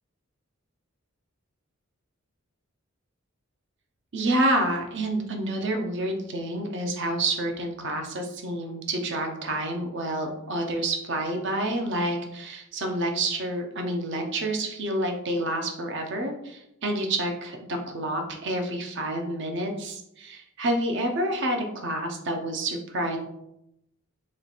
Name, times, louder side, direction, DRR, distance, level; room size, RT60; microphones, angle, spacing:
voice 1, 4.1-23.2, right 1 dB, 55° right, 4 dB, 0.7 m, -28 dB
3.2 x 3.1 x 4.1 m, 0.81 s
head